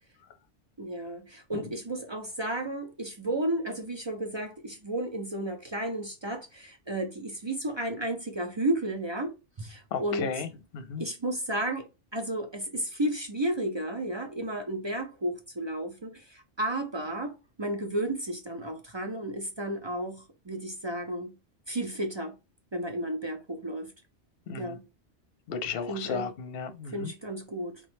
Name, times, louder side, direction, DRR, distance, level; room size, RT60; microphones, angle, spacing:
voice 1, 0.8-9.3 9.6-10.3 11.0-17.3 17.6-21.3 21.7-22.3 22.7-23.9 24.6-24.8 25.9-26.3 26.9-27.8, right 1 dB, 35° right, 0.4 m, -33 dB
voice 2, 9.9-10.5 10.7-11.0 24.5-24.8 25.5-27.1, left 6 dB, 60° left, 0.8 m, -34 dB
3.8 x 3.1 x 3.1 m
omnidirectional pair, 1.2 m